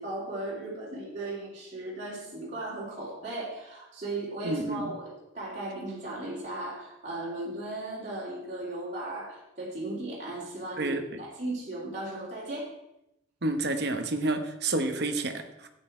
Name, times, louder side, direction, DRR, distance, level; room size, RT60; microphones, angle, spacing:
voice 1, 0.0-12.7, right 2 dB, 35° right, -7 dB, 3.3 m, -36 dB
voice 2, 4.4-4.9 10.8-11.0 13.4-15.7, right 2 dB, 55° right, 6 dB, 1.0 m, -29 dB
12.5 x 8.6 x 4.4 m, 0.87 s
head